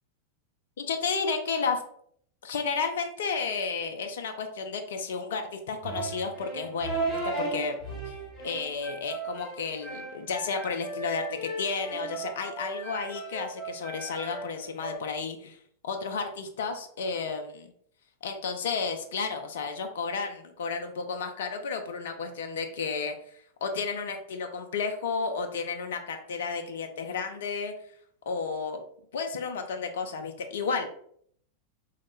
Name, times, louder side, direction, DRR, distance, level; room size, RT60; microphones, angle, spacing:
voice 1, 0.8-1.8 2.4-7.8 8.1-8.2 8.4-15.6 15.8-17.7 18.2-27.7 28.3-28.8 29.1-30.9, left 5 dB, 60° left, 5 dB, 0.3 m, -32 dB
sound 1, 5.8-15.0, right 3 dB, 10° left, 1.2 m, -36 dB
3.0 x 2.1 x 3.1 m, 0.65 s
figure-of-eight pair, 90°, 0 cm